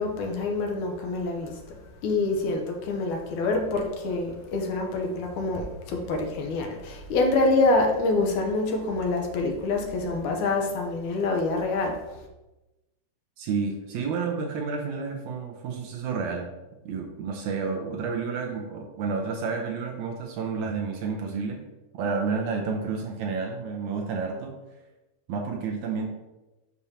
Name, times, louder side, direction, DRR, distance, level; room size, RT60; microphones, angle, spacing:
voice 1, 0.0-1.5 2.0-11.9, left 3 dB, 75° left, 2 dB, 2.2 m, -26 dB
voice 2, 13.4-16.5 16.9-21.6 21.9-24.6 25.3-26.1, right 5 dB, 75° right, 1 dB, 1.9 m, -30 dB
6.9 x 6.2 x 2.8 m, 1.0 s
omnidirectional pair, 3.7 m